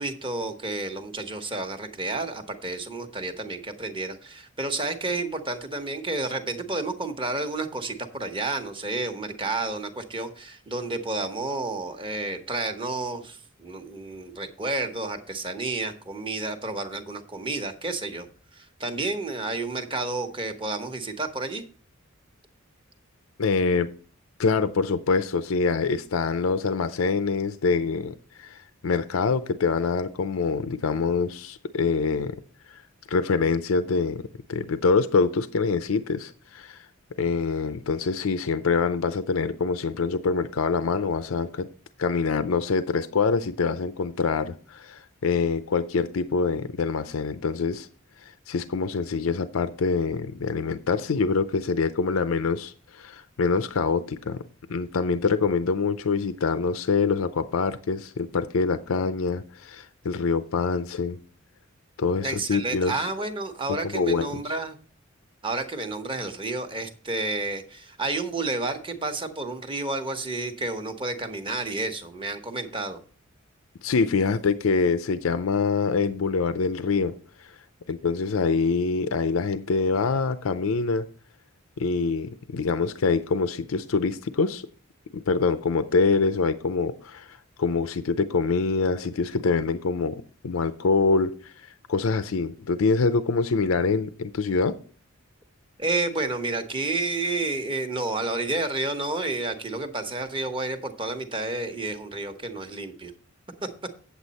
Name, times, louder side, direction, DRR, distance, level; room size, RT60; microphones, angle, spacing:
voice 1, 0.0-18.3 18.5-21.6 62.2-64.8 65.4-73.0 95.8-103.1 103.6-103.7, right 2 dB, 25° right, 1.0 m, -30 dB
voice 2, 23.4-23.9 24.4-32.4 32.7-32.8 33.1-34.2 34.5-36.9 37.2-41.7 42.0-47.9 48.2-54.4 54.7-61.2 62.0-63.1 63.9-64.3 73.8-77.5 77.9-81.1 81.8-84.7 85.1-94.8, left 4 dB, 85° left, 0.5 m, -25 dB
8.4 x 8.1 x 4.1 m
head